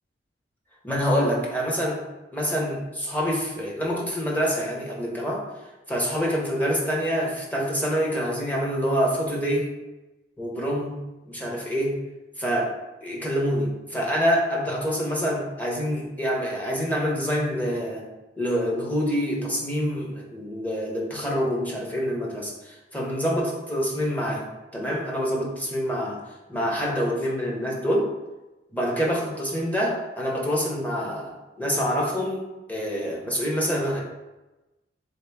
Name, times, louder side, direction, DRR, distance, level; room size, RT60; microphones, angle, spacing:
voice 1, 0.8-2.0 2.3-5.4 5.9-9.7 10.4-12.0 12.4-12.7 13.0-18.0 18.4-26.2 26.5-28.1 28.7-34.0, equal, 10° left, -3 dB, 0.7 m, -26 dB
3.7 x 2.8 x 3.4 m, 1.1 s
head